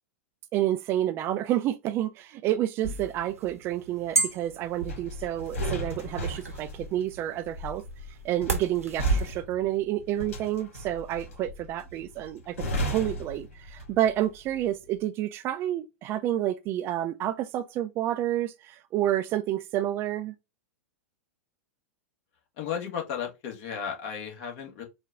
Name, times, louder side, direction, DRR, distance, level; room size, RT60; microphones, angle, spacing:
voice 1, 0.5-7.8 8.2-20.3, right 12 dB, 30° right, 0.3 m, -29 dB
sound 1, 2.8-9.3, right 3 dB, 80° right, 0.9 m, -32 dB
sound 2, 4.8-14.2 14.5-14.7, equal, 65° left, 1.9 m, -36 dB
voice 2, 22.6-24.8, left 7 dB, 45° left, 1.4 m, -34 dB
4.5 x 2.3 x 3.6 m
figure-of-eight pair, 95°, 8 cm